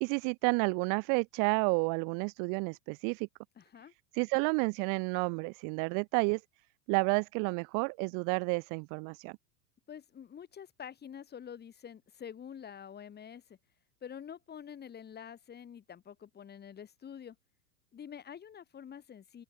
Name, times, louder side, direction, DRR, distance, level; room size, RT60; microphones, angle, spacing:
voice 1, 0.0-3.3 4.1-6.4 6.9-9.3, right 36 dB, 45° right, 0.8 m, -30 dB
voice 2, 3.6-3.9 9.9-13.4 14.0-17.4 17.9-19.4, left 8 dB, 20° left, 2.7 m, -47 dB
open air
supercardioid pair, 130°, 45 cm